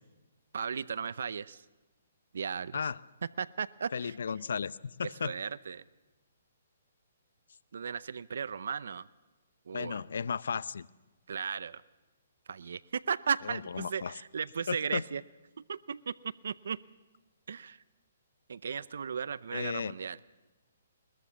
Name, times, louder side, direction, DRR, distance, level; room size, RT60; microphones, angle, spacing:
voice 1, 0.5-1.6 2.3-2.9 3.4-4.2 5.0-5.8 7.7-9.1 9.7-10.0 11.3-11.8 12.5-15.2 15.7-16.1 16.4-16.8 17.5-17.8 18.5-20.2, right 6 dB, 75° right, 18 dB, 0.6 m, -36 dB
voice 2, 3.9-5.3 9.7-10.9 13.5-14.1 14.7-15.0 19.5-19.9, left 6 dB, 75° left, 19 dB, 0.6 m, -34 dB
21.5 x 21.0 x 7.2 m, 1.2 s
hypercardioid pair, 150°, 0 cm